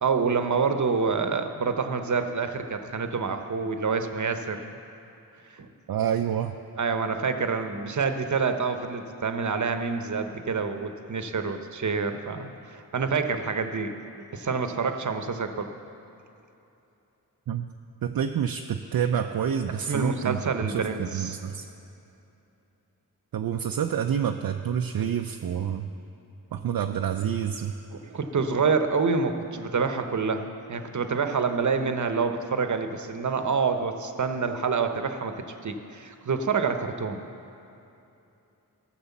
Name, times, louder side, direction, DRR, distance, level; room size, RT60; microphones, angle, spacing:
voice 1, 0.0-4.6 5.5-5.7 6.8-15.7 19.9-21.4 28.1-35.3 35.6-37.2, right 5 dB, 50° right, 7 dB, 0.9 m, -27 dB
voice 2, 5.9-6.6 17.5-17.7 18.0-21.7 23.3-25.9 26.5-27.7, right 8 dB, 65° right, 5 dB, 0.5 m, -28 dB
14.0 x 6.3 x 7.1 m, 2.8 s
cardioid pair, 65°, 38 cm